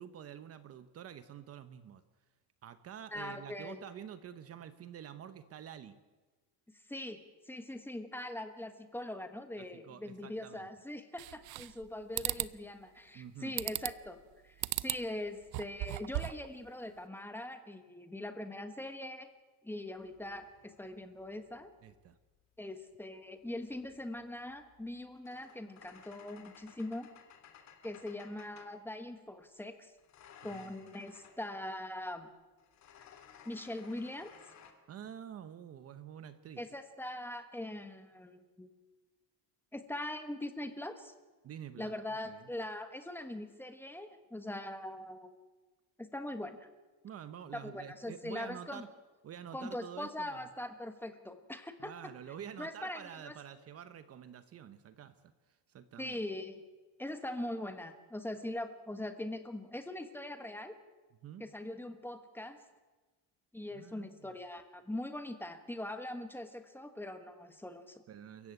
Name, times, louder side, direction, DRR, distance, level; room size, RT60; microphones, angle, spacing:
voice 1, 0.0-2.0 2.6-6.0 9.6-10.7 13.1-13.5 21.8-22.2 30.5-30.9 34.9-36.6 41.4-41.9 42.2-42.5 47.0-48.9 49.2-50.5 51.8-56.2 61.2-61.4 63.7-64.3 68.1-68.5, right 9 dB, 35° right, 11 dB, 1.0 m, -48 dB
voice 2, 3.1-3.8 6.9-14.2 14.4-19.3 19.6-21.7 22.6-27.1 27.8-29.9 30.4-32.3 33.4-34.3 36.6-38.7 39.7-41.1 41.8-45.3 46.0-46.7 47.6-48.8 49.5-51.9 52.6-53.3 56.0-56.6 57.0-60.7 61.4-62.6 63.5-68.0, left 1 dB, 5° left, 7 dB, 1.3 m, -42 dB
sound 1, 11.2-11.8 12.2-12.5 13.6-14.1 14.6-15.0 15.4-16.5, right 19 dB, 65° right, 0.7 m, -36 dB
sound 2, 20.0-22.1 23.3-28.8 30.0-31.5 32.6-34.7, left 8 dB, 45° left, 2.7 m, -58 dB
29.0 x 15.0 x 8.9 m, 1.3 s
cardioid pair, 170°, 40 cm